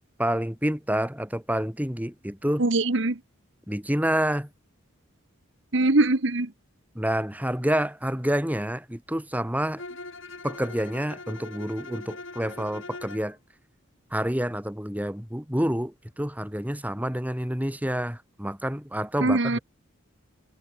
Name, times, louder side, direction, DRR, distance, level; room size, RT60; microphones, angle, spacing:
voice 1, 0.2-2.7 3.7-4.5 7.0-9.8 10.4-13.4 14.1-19.6, equal, 5° right, 3.5 m, -28 dB
voice 2, 2.6-3.2 5.7-6.5 19.2-19.6, right 2 dB, 60° right, 1.3 m, -22 dB
Bowed string instrument, 9.8-13.3, left 3 dB, 70° left, 6.2 m, -41 dB
head